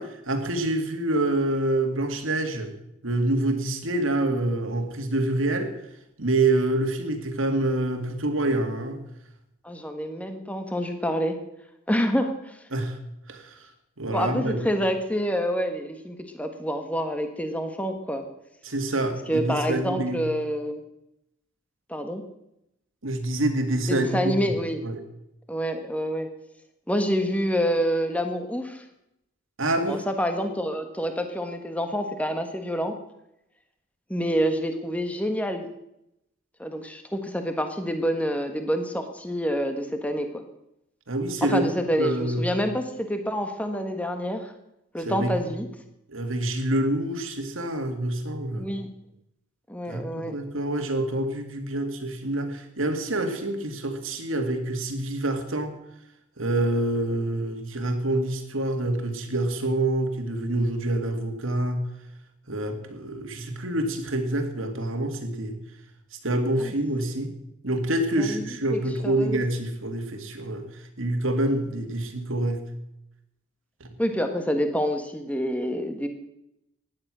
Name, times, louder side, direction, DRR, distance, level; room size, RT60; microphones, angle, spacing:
voice 1, 0.0-2.7 3.0-5.7 6.2-9.0 12.7-13.0 13.3-13.6 14.0-14.6 18.6-20.2 23.0-25.0 29.6-30.0 41.1-41.7 42.0-42.5 45.0-45.4 46.1-48.7 49.9-55.7 56.4-61.9 62.5-65.6 66.2-67.3 67.6-72.7 73.8-73.9, right 1 dB, 75° right, 6 dB, 2.3 m, -27 dB
voice 2, 9.6-11.4 11.9-12.6 14.1-18.2 19.3-20.8 21.9-22.2 23.9-24.8 25.5-26.3 26.9-28.8 29.9-32.9 34.1-35.6 36.6-40.4 41.5-44.5 44.9-45.7 48.5-48.9 49.7-50.4 66.6-66.7 68.2-68.4 68.7-69.4 74.0-76.1, equal, 5° left, 6 dB, 1.5 m, -27 dB
16.0 x 10.5 x 6.3 m, 0.83 s
head